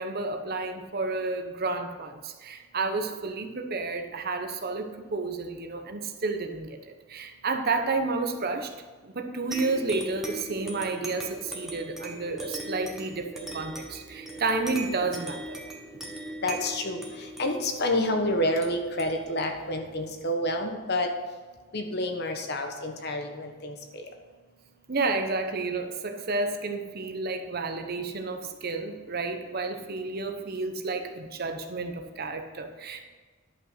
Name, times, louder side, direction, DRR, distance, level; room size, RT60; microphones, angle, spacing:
voice 1, 0.0-8.7 9.0-15.6 24.9-33.0, right 3 dB, 50° right, 6 dB, 1.0 m, -31 dB
sound 1, 9.5-20.6, right 1 dB, ahead, 1.4 m, -40 dB
voice 2, 16.4-21.1 21.7-24.1, left 1 dB, 55° left, 4 dB, 1.2 m, -29 dB
11.0 x 5.7 x 5.7 m, 1.4 s
head